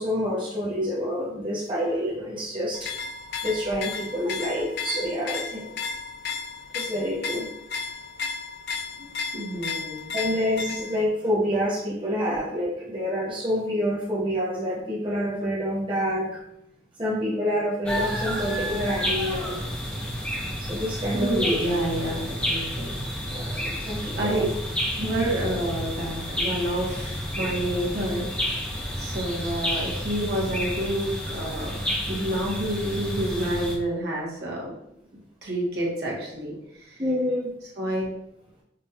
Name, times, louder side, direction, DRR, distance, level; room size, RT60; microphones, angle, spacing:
voice 1, 0.0-2.9 3.4-5.7 6.7-7.5 9.0-9.1 10.1-16.4 17.0-19.6 20.6-21.5 23.2-24.5 25.0-25.2 37.0-37.5, equal, 30° right, -6 dB, 0.7 m, -27 dB
sound 1, 2.7-11.1, left 5 dB, 60° left, 0.4 m, -34 dB
voice 2, 9.3-10.1 21.1-23.0 24.1-24.5 25.0-31.7 32.1-34.7 35.4-37.0 37.8-38.1, right 1 dB, 60° right, -4 dB, 1.1 m, -29 dB
sound 2, 17.9-33.8, equal, 5° left, 0.6 m, -30 dB
5.3 x 2.3 x 2.7 m, 0.79 s
head